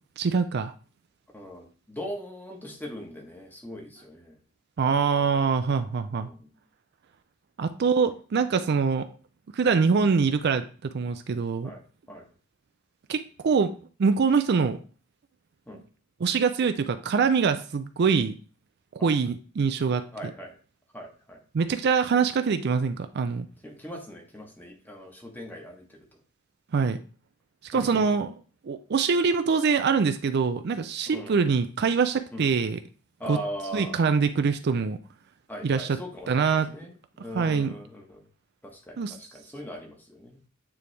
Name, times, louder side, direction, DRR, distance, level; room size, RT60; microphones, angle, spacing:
voice 1, 0.2-0.7 4.8-6.3 7.6-9.1 9.5-11.7 13.1-13.7 14.0-14.8 16.2-18.3 19.0-20.0 21.5-23.5 26.7-27.0 27.6-28.3 28.6-32.8 33.3-33.4 33.7-35.0 35.6-36.0 36.3-36.7 37.3-37.7 39.0-39.1, right 5 dB, 55° right, 9 dB, 0.4 m, -24 dB
voice 2, 1.3-4.4 6.1-6.5 11.6-12.2 15.7-15.8 19.0-19.1 20.1-20.5 20.9-21.4 23.6-26.1 27.7-28.0 31.1-31.4 32.3-32.5 33.2-34.1 35.5-38.2 38.6-40.4, equal, 10° left, 1 dB, 1.2 m, -40 dB
9.1 x 3.4 x 3.3 m, 0.39 s
head